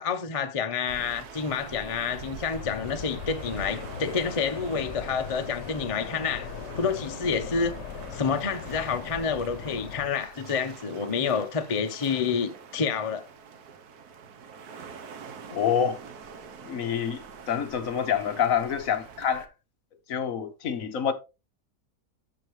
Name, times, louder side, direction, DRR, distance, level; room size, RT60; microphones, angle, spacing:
voice 1, 0.0-6.5 6.8-7.8 8.1-13.3, left 5 dB, 40° left, 0.5 m, -28 dB
sound 1, 0.9-19.5, right 4 dB, 65° right, 1.5 m, -44 dB
sound 2, 2.5-10.1, left 8 dB, 80° left, 1.4 m, -40 dB
voice 2, 15.5-16.0 16.6-19.5 20.1-21.1, left 8 dB, 55° left, 1.2 m, -27 dB
13.5 x 4.7 x 3.1 m
omnidirectional pair, 1.8 m